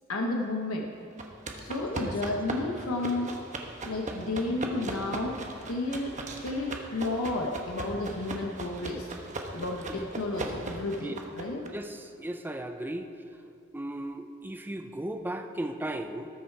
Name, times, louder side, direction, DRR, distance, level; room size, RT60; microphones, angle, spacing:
voice 1, 0.1-0.9 1.6-3.3 3.8-5.4 5.7-6.2 6.4-9.1 9.5-11.6, left 2 dB, 80° left, 1 dB, 1.0 m, -32 dB
sound 1, 1.2-11.7, right 2 dB, 35° right, 1.1 m, -38 dB
voice 2, 11.7-13.1 13.7-16.3, right 1 dB, 10° right, 5 dB, 0.5 m, -36 dB
18.5 x 6.6 x 4.6 m, 2.4 s
head